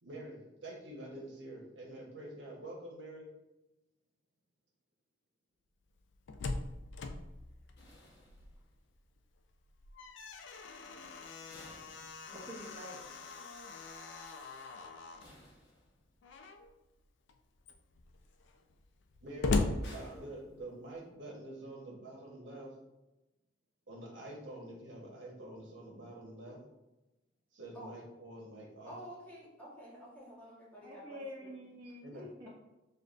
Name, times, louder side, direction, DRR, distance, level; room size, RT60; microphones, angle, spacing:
voice 1, 0.0-3.3 19.2-19.6 19.9-22.8 23.9-26.6 27.5-29.0 32.0-32.3, right 1 dB, 80° right, -2 dB, 1.1 m, -47 dB
Slam, 6.0-8.8 9.1-9.2 9.7-15.3 16.2-16.7 17.3-17.4 17.6-20.7, left 3 dB, 75° left, 0.4 m, -39 dB
sound 1, 7.8-9.0 11.5-12.8 15.2-16.4 19.8-21.1, left 1 dB, 60° left, 0.9 m, -58 dB
voice 2, 12.3-13.0 30.8-32.5, equal, 25° right, -4 dB, 0.6 m, -47 dB
voice 3, 28.9-31.5, equal, 10° left, -6 dB, 1.3 m, -50 dB
6.6 x 2.5 x 2.5 m, 1.0 s
head